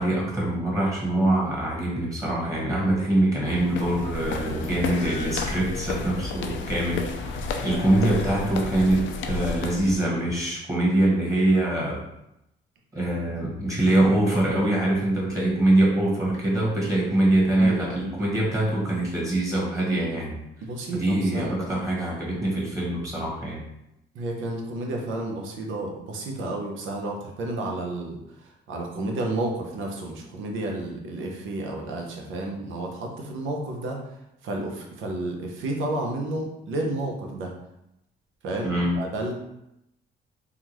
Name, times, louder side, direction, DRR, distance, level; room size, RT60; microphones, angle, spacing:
voice 1, 0.0-9.0 9.3-12.0 12.9-20.4 20.9-23.6 28.9-29.1 38.6-39.0, right 1 dB, 15° right, -5 dB, 1.4 m, -24 dB
sound 1, 3.4-10.0, left 4 dB, 70° left, 0.4 m, -32 dB
voice 2, 17.6-18.1 20.6-21.7 24.1-34.0 34.4-37.5 38.4-38.7 39.0-39.3, right 2 dB, 80° right, 0 dB, 0.7 m, -31 dB
3.6 x 2.3 x 3.0 m, 0.86 s
cardioid pair, 90°, 20 cm